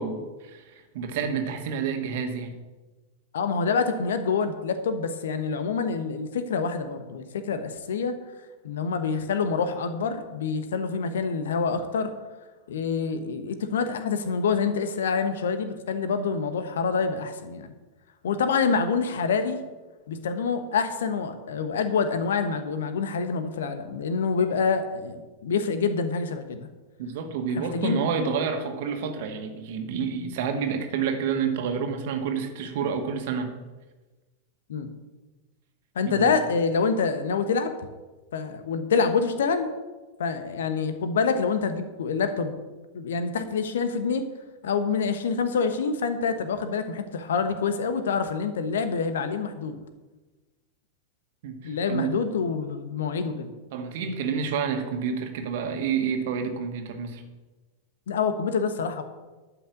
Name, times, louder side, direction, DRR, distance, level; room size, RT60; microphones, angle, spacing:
voice 1, 0.0-2.5 27.0-33.5 36.0-36.3 51.4-52.1 53.7-57.2, right 6 dB, 55° right, 6 dB, 1.8 m, -29 dB
voice 2, 3.3-8.2 8.6-12.1 12.7-17.7 18.2-19.6 20.1-26.7 27.5-28.0 34.7-34.9 35.9-37.7 38.3-39.7 40.2-42.6 42.9-44.3 44.6-49.8 51.6-53.5 58.1-59.0, left 5 dB, 60° left, 9 dB, 1.2 m, -26 dB
12.0 x 6.1 x 8.5 m, 1.2 s
figure-of-eight pair, 90°, 0 cm